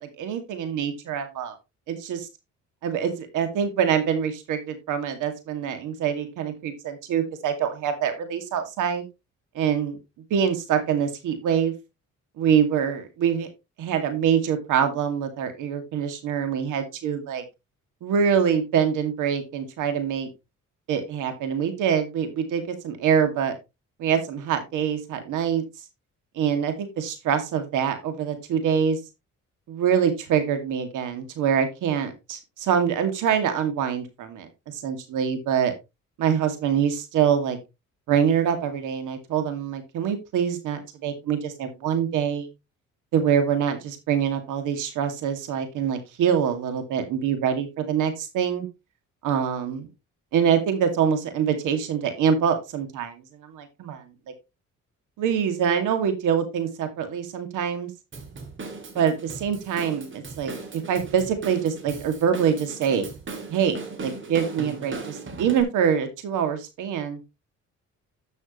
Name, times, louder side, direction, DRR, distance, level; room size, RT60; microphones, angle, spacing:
voice 1, 0.0-1.5 1.9-2.3 2.8-9.1 9.5-10.0 10.3-11.7 12.4-13.5 13.8-17.4 18.0-20.3 20.9-23.6 24.0-25.6 26.4-29.0 29.7-35.7 36.2-37.6 38.1-42.5 43.1-48.7 49.2-49.8 50.3-54.0 55.2-57.9 59.0-59.1 59.4-63.1 63.5-67.2, right 8 dB, 85° right, 8 dB, 2.3 m, -25 dB
Drum kit / Drum, 58.1-65.6, right 3 dB, 40° right, 2.5 m, -38 dB
12.0 x 6.4 x 3.1 m, 0.24 s
cardioid pair, 90°, 30 cm